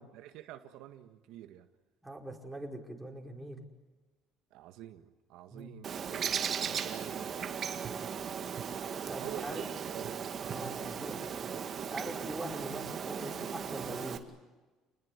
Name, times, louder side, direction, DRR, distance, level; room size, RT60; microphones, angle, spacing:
voice 1, 0.0-1.7 4.5-7.8 9.2-10.3, right 12 dB, 75° right, 7 dB, 1.6 m, -48 dB
voice 2, 2.0-3.7 5.5-5.7 9.1-9.6 10.5-11.5 11.9-14.2, right 1 dB, 5° right, 0 dB, 5.0 m, -42 dB
Bird, 5.8-14.2, right 7 dB, 40° right, 2.1 m, -37 dB
29.5 x 20.5 x 8.4 m, 1.3 s
cardioid pair, 130°, 0 cm